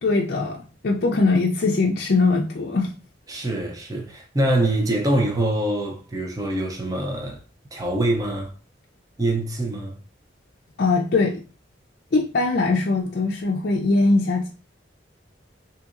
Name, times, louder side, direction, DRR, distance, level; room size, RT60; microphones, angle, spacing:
voice 1, 0.0-2.9 10.8-11.4 12.1-14.5, left 3 dB, 55° left, 0.4 m, -21 dB
voice 2, 3.3-7.4 7.7-8.5 9.2-10.0, right 1 dB, 20° right, 0.5 m, -24 dB
4.0 x 2.7 x 2.4 m
head